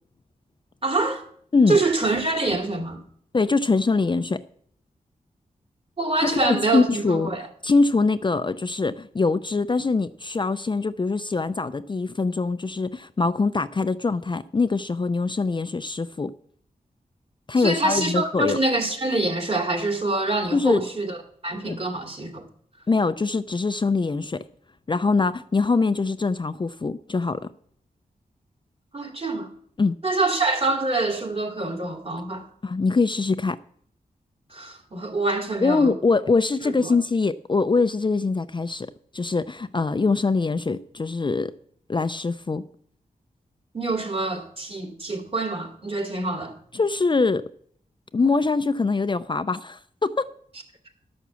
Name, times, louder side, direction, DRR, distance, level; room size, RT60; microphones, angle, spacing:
voice 1, 0.8-1.2 1.7-3.0 6.0-7.5 17.6-21.2 21.4-22.5 28.9-29.5 30.0-32.4 34.5-35.9 36.6-36.9 43.7-46.5, right 2 dB, 40° right, 2.9 m, -25 dB
voice 2, 3.3-4.4 6.2-7.3 7.6-16.3 17.5-18.6 20.5-20.8 21.7-21.8 22.9-24.4 24.9-27.5 29.8-30.0 32.6-33.6 35.6-41.5 41.9-42.6 46.7-47.5 48.1-50.3, left 3 dB, 30° left, 0.5 m, -23 dB
12.0 x 6.2 x 7.0 m
cardioid pair, 50°, 15 cm